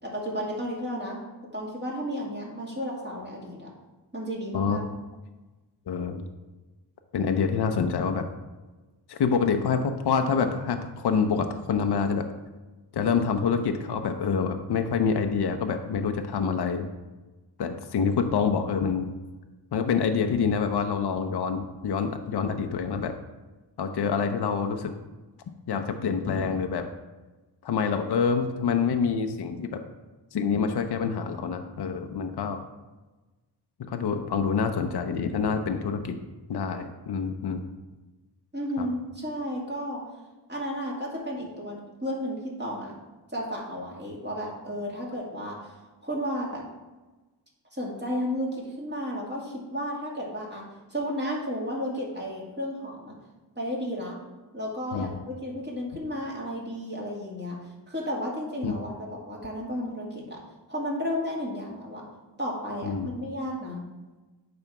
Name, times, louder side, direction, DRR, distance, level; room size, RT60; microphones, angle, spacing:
voice 1, 0.0-1.2 1.5-3.7 4.1-4.8 38.5-40.0 40.5-42.9 43.3-46.6 47.7-50.6 50.9-53.1 53.6-54.1 54.5-57.6 57.9-60.4 60.7-62.1 62.4-63.8, equal, 25° right, -4 dB, 2.3 m, -33 dB
voice 2, 5.9-6.3 7.1-8.3 9.1-12.3 12.9-16.9 17.6-19.1 19.7-23.1 23.8-24.9 25.7-26.8 27.6-29.8 30.3-32.6 33.8-36.2 36.5-37.6 38.8-38.9 54.9-55.1 58.6-58.7 62.8-63.1, left 6 dB, 60° left, 6 dB, 0.7 m, -26 dB
8.8 x 3.5 x 5.9 m, 1.2 s
cardioid pair, 80°, 44 cm